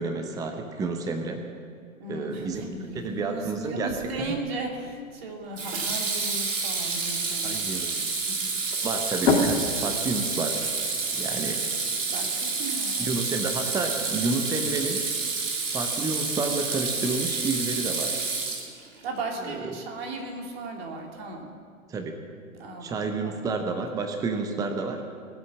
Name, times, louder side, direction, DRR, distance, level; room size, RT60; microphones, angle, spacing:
voice 1, 0.0-1.4 2.1-2.6 2.9-3.9 4.2-4.3 7.4-8.0 8.8-10.7 11.1-11.6 13.0-15.0 15.7-18.2 19.4-19.7 21.9-22.1 22.8-25.0, right 3 dB, 10° right, 5 dB, 0.8 m, -30 dB
voice 2, 2.0-7.6 8.2-8.5 12.1-13.1 19.0-21.5 22.6-23.4, right 2 dB, 45° right, 1 dB, 3.0 m, -36 dB
sound 1, 2.1-21.5, left 3 dB, 55° left, 2.0 m, -37 dB
Water tap faucet / Sink (filling or washing), 3.9-4.3 5.6-19.0, right 4 dB, 60° right, 2.7 m, -29 dB
19.5 x 8.1 x 7.3 m, 2.2 s
figure-of-eight pair, 115°, 42 cm